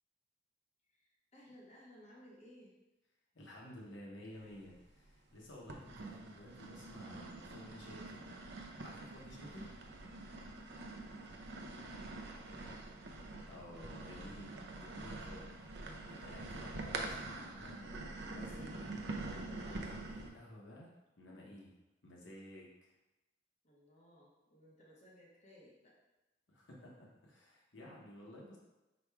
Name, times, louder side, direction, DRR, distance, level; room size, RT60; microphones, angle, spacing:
voice 1, 0.8-2.8 10.7-12.9 23.6-26.0, equal, 35° left, -4 dB, 1.0 m, -61 dB
voice 2, 3.3-9.7 13.4-19.1 19.4-21.7 22.0-22.9 26.5-28.6, left 1 dB, 75° left, -3 dB, 0.9 m, -54 dB
sound 1, 4.5-5.1 5.7-20.3, right 2 dB, 60° right, 0.5 m, -45 dB
5.0 x 2.3 x 4.6 m, 1.0 s
head